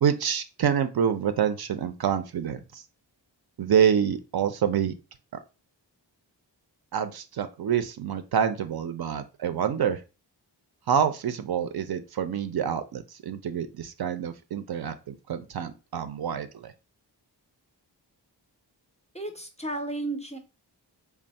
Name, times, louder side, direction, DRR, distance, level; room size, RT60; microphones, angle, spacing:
voice 1, 0.0-2.8 3.6-4.9 6.9-10.0 10.9-16.7, right 8 dB, 60° right, 10 dB, 0.5 m, -27 dB
voice 2, 19.1-20.4, right 2 dB, 15° left, 5 dB, 0.4 m, -33 dB
3.4 x 2.0 x 4.0 m, 0.30 s
wide cardioid pair, 105°, 43 cm